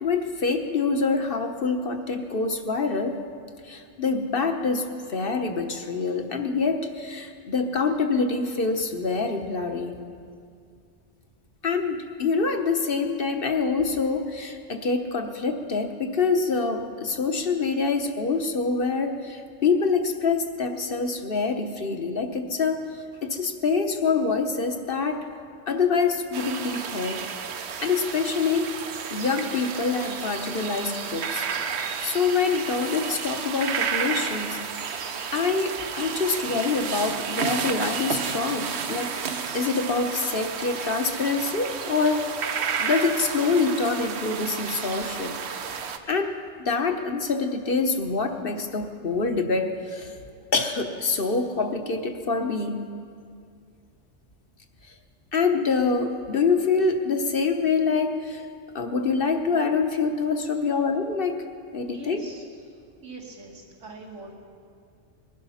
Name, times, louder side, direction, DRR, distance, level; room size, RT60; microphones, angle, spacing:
voice 1, 0.0-3.2 3.6-10.0 11.6-22.8 23.2-25.3 25.7-27.2 27.8-28.7 29.1-31.5 32.0-34.6 35.3-42.2 42.8-45.4 46.1-50.1 50.5-52.8 55.3-58.4 58.7-61.4 61.7-62.2, left 4 dB, 50° left, 6 dB, 1.2 m, -25 dB
sound 1, 26.3-46.0, right 6 dB, 65° right, 1.1 m, -31 dB
voice 2, 61.9-62.7 63.0-64.3, right 2 dB, 90° right, -1 dB, 2.7 m, -42 dB
20.5 x 11.5 x 5.6 m, 2.3 s
omnidirectional pair, 1.2 m